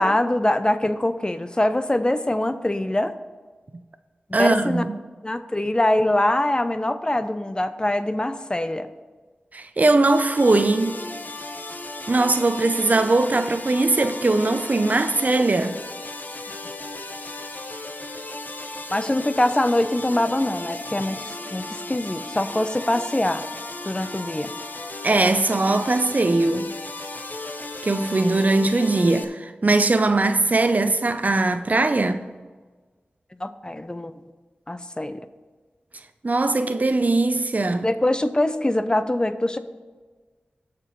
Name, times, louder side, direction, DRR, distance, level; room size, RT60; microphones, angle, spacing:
voice 1, 0.0-3.1 4.3-4.8 5.2-8.9 18.9-23.4 23.9-24.5 33.4-34.1 34.7-35.3 37.8-39.6, left 1 dB, 25° left, 0.6 m, -23 dB
voice 2, 4.3-4.9 9.5-11.0 12.1-15.8 25.0-26.7 27.8-32.2 36.2-37.9, right 2 dB, 45° right, 0.5 m, -20 dB
sound 1, 10.0-29.2, left 2 dB, 55° left, 0.8 m, -35 dB
17.0 x 5.9 x 3.1 m
cardioid pair, 40°, 4 cm